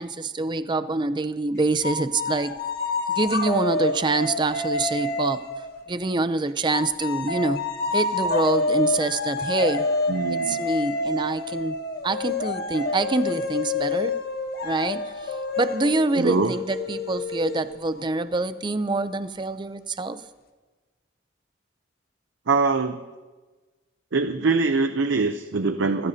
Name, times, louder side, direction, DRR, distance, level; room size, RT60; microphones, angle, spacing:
voice 1, 0.0-2.6 3.1-5.4 5.9-7.6 7.9-9.9 10.3-11.8 12.0-14.1 14.6-20.2, right 3 dB, 25° right, 12 dB, 0.5 m, -26 dB
sound 1, 1.8-6.2 6.7-18.1, left 3 dB, 55° left, 1.4 m, -28 dB
voice 2, 10.1-10.6 16.1-16.6 22.5-23.0 24.1-26.1, right 3 dB, 75° right, 8 dB, 0.7 m, -23 dB
27.5 x 14.5 x 2.8 m, 1.3 s
head